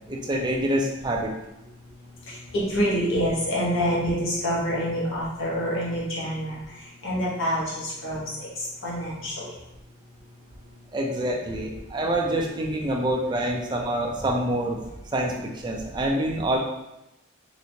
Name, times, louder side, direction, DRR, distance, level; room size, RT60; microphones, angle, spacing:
voice 1, 0.1-1.3 10.9-14.8 15.1-16.6, right 1 dB, 20° right, -1 dB, 0.4 m, -26 dB
voice 2, 2.3-9.5, equal, 75° left, -6 dB, 1.1 m, -27 dB
3.2 x 3.0 x 2.7 m, 0.93 s
head